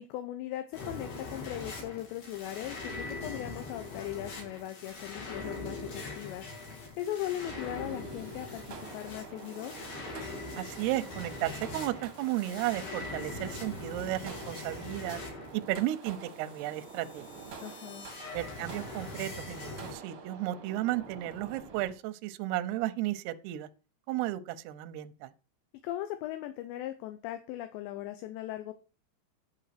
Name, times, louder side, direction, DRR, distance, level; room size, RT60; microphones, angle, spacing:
voice 1, 0.0-9.7 17.6-18.1 25.8-28.7, left 13 dB, 75° left, 2.9 m, -39 dB
sound 1, 0.7-19.9, left 3 dB, 55° left, 4.9 m, -42 dB
sound 2, 7.5-21.9, right 5 dB, 60° right, 1.4 m, -48 dB
voice 2, 10.6-15.2 15.5-17.3 18.3-23.7 24.1-25.3, right 15 dB, 80° right, 2.4 m, -34 dB
10.5 x 6.5 x 5.9 m
omnidirectional pair, 5.5 m